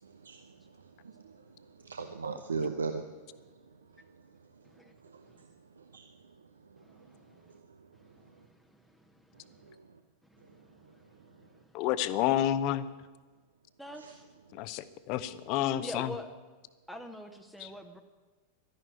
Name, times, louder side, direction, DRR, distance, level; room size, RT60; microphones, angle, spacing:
voice 1, 0.0-8.5 9.3-10.0 10.4-11.6 13.9-14.2 14.5-14.7 15.6-15.7 17.6-17.7, right 4 dB, 70° right, 7 dB, 0.8 m, -43 dB
voice 2, 6.8-7.6 7.9-9.8 10.3-11.8 13.8-14.2 15.8-16.3 16.9-18.0, left 1 dB, ahead, 3 dB, 1.0 m, -47 dB
voice 3, 11.7-12.9 14.5-16.1 17.6-17.7, left 12 dB, 40° left, 14 dB, 0.8 m, -30 dB
12.5 x 11.0 x 9.4 m, 1.3 s
figure-of-eight pair, 90°, 0 cm